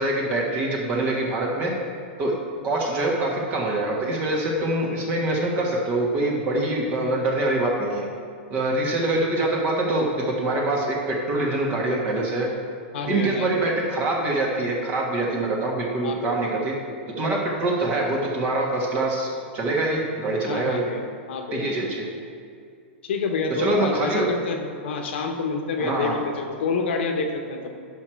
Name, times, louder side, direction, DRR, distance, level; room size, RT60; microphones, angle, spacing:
voice 1, 0.0-1.7 2.2-2.3 2.6-8.1 8.5-12.5 13.1-16.7 17.2-20.8 21.5-22.1 23.6-24.3 25.8-26.2, right 2 dB, 25° right, -1 dB, 1.5 m, -24 dB
voice 2, 12.9-13.7 16.0-16.4 20.5-21.7 23.0-27.7, left 4 dB, 65° left, 4 dB, 1.1 m, -28 dB
9.9 x 6.3 x 4.5 m, 2.3 s
supercardioid pair, 165°, 7 cm